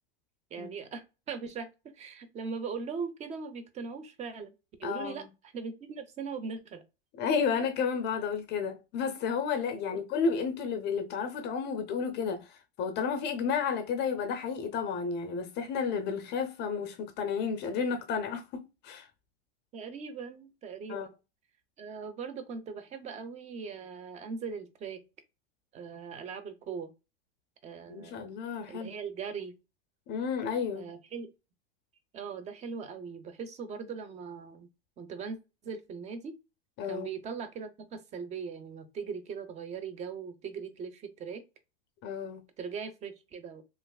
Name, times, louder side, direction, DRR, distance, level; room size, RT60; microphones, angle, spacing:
voice 1, 0.5-1.7 1.9-4.5 4.8-5.2 5.5-6.8 9.9-10.0 19.7-21.2 21.8-25.0 25.7-26.9 27.6-28.2 28.7-29.5 30.7-31.3 32.1-34.7 35.0-35.4 35.6-36.3 36.9-41.4 42.6-43.6, right 5 dB, 20° right, 0.5 m, -40 dB
voice 2, 4.8-5.3 7.2-19.1 20.9-21.1 27.9-28.9 30.1-30.9 36.8-37.1 42.0-42.4, left 6 dB, 35° left, 0.5 m, -32 dB
3.1 x 2.5 x 2.2 m
hypercardioid pair, 110°, 32 cm